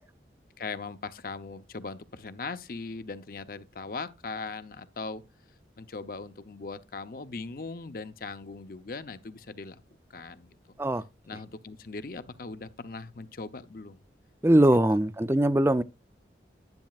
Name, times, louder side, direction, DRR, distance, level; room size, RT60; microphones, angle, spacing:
voice 1, 0.6-5.2 5.8-9.8 10.1-10.5 11.3-14.0, left 4 dB, 50° left, 0.6 m, -39 dB
voice 2, 14.4-15.8, right 1 dB, 15° right, 0.4 m, -21 dB
10.5 x 10.0 x 2.4 m
head